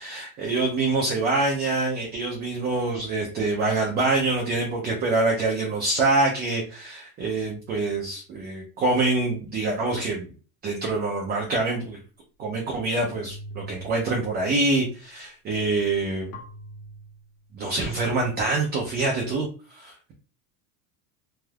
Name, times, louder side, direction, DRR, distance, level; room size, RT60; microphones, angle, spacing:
voice 1, 0.0-10.3 10.6-12.0 12.4-16.4 17.5-20.1, right 3 dB, 25° right, -1 dB, 0.5 m, -25 dB
sound 1, 13.1-14.8 16.3-17.8, equal, 55° left, 0.9 m, -44 dB
3.4 x 2.6 x 2.3 m, 0.37 s
supercardioid pair, 155°, 44 cm